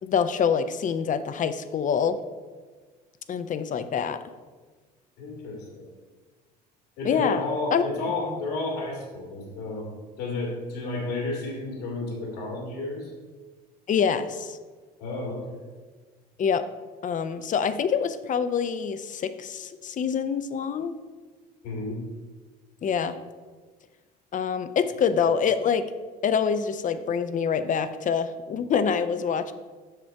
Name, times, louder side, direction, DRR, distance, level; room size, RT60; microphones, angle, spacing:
voice 1, 0.0-2.2 3.3-4.2 7.0-7.4 7.7-7.8 13.9-14.6 16.4-16.7 17.0-20.9 22.8-23.2 24.3-25.8 26.2-29.5, left 7 dB, 40° left, 12 dB, 0.6 m, -25 dB
voice 2, 5.2-5.9 7.0-9.9 10.2-13.1 15.0-15.6 21.6-22.0, left 2 dB, 75° left, -1 dB, 2.5 m, -32 dB
6.6 x 6.2 x 4.5 m, 1.4 s
hypercardioid pair, 65°, 21 cm